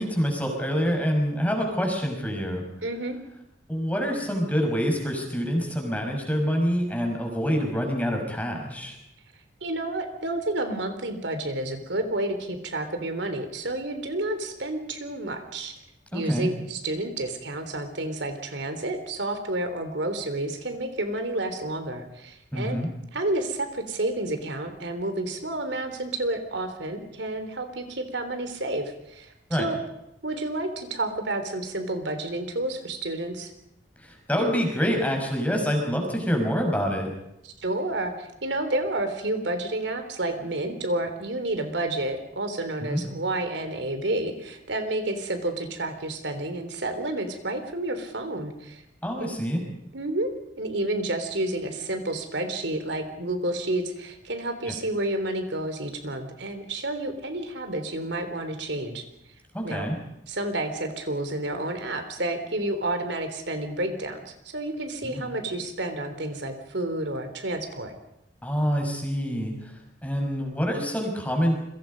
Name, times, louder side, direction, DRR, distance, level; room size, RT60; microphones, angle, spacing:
voice 1, 0.0-2.6 3.7-9.0 16.1-16.5 22.5-22.9 29.5-29.7 34.0-37.1 42.8-43.0 49.0-49.6 59.5-60.0 65.0-65.2 68.4-69.5 70.0-71.5, equal, 10° left, 2 dB, 5.5 m, -26 dB
voice 2, 2.8-3.2 9.6-15.8 16.1-22.8 23.1-29.8 30.2-33.5 37.4-48.8 49.2-49.3 49.9-50.3 50.6-59.0 59.6-59.9 60.3-67.9, right 1 dB, 70° right, 8 dB, 3.6 m, -30 dB
29.5 x 23.0 x 5.3 m, 0.85 s
head